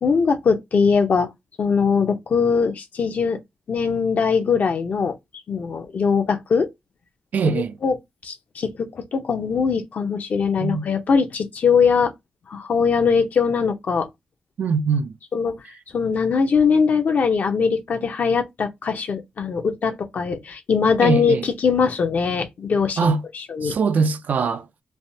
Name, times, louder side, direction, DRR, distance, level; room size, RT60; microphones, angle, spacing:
voice 1, 0.0-1.3 1.6-3.4 3.7-5.2 5.5-6.7 7.6-8.0 8.2-12.1 12.5-14.1 15.3-15.5 15.9-23.8, left 5 dB, 65° left, 0.7 m, -21 dB
voice 2, 7.3-7.8 10.6-10.9 14.6-15.1 21.0-21.4 23.0-23.2 23.6-24.7, right 5 dB, 65° right, 0.3 m, -22 dB
3.3 x 2.0 x 2.7 m
cardioid pair, 70°, 3 cm